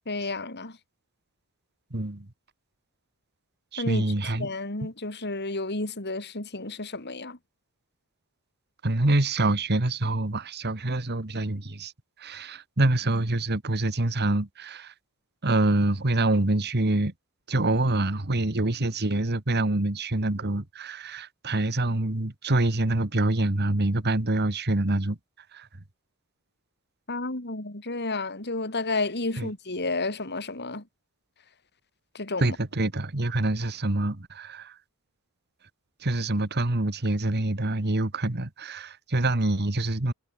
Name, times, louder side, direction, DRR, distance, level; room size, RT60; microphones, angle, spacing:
voice 1, 0.1-0.8 3.8-7.4 27.1-30.8 32.1-32.6, left 2 dB, 50° left, 3.9 m, -31 dB
voice 2, 1.9-2.3 3.7-4.5 8.8-11.9 12.2-14.9 15.4-17.1 17.5-25.2 25.5-25.7 29.4-29.5 32.4-34.8 36.0-40.1, right 2 dB, 50° right, 1.8 m, -26 dB
head